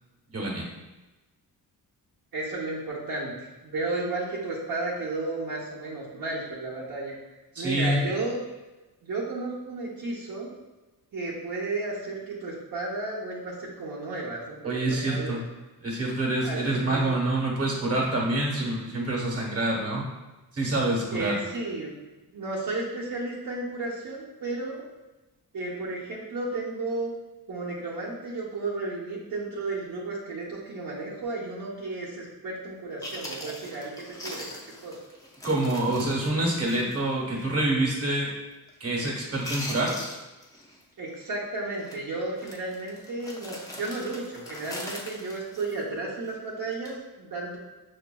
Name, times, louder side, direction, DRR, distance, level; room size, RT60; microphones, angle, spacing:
voice 1, 0.3-0.7 7.5-8.0 14.6-15.4 15.8-20.0 20.5-21.4 35.4-38.3 38.8-40.0, right 1 dB, 40° right, -2 dB, 1.1 m, -26 dB
voice 2, 2.3-7.2 7.6-8.4 9.0-10.5 11.1-15.3 16.4-17.1 21.1-21.9 22.3-24.8 25.5-27.1 27.5-35.0 41.0-47.6, right 2 dB, 60° right, -7 dB, 0.9 m, -33 dB
Chewing mastication, 32.7-32.8 33.0-37.0 37.3-37.5 38.0-38.3 38.5-39.0 39.3-40.8 41.1-41.3 41.8-42.0 42.4-46.3 46.7-47.0, left 1 dB, 10° left, 0.6 m, -41 dB
5.8 x 2.5 x 2.2 m, 1.1 s
wide cardioid pair, 115°, 37 cm